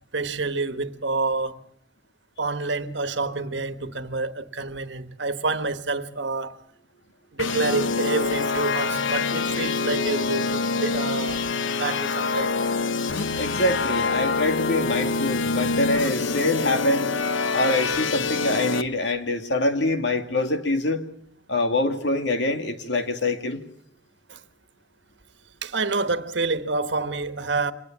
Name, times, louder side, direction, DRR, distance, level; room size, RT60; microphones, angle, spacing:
voice 1, 0.1-1.6 2.4-6.5 7.3-11.4 11.8-12.6 24.3-24.4 25.6-27.7, right 3 dB, 70° right, 1.4 m, -28 dB
sound 1, 7.4-18.8, left 4 dB, 90° left, 0.9 m, -25 dB
voice 2, 13.4-17.1 17.5-21.0 21.5-23.6, left 2 dB, 70° left, 2.3 m, -25 dB
25.5 x 19.5 x 7.4 m
head